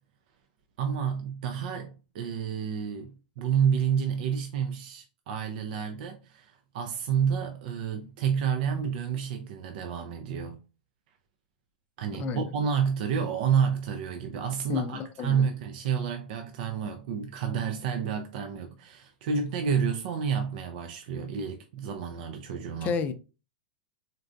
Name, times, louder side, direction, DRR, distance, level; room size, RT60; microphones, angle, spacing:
voice 1, 0.8-10.6 12.0-23.0, right 7 dB, 60° right, 0.4 m, -29 dB
voice 2, 12.2-12.5 14.7-15.5 22.8-23.1, left 6 dB, 30° left, 0.4 m, -31 dB
3.8 x 2.2 x 2.5 m
supercardioid pair, 135°, 5 cm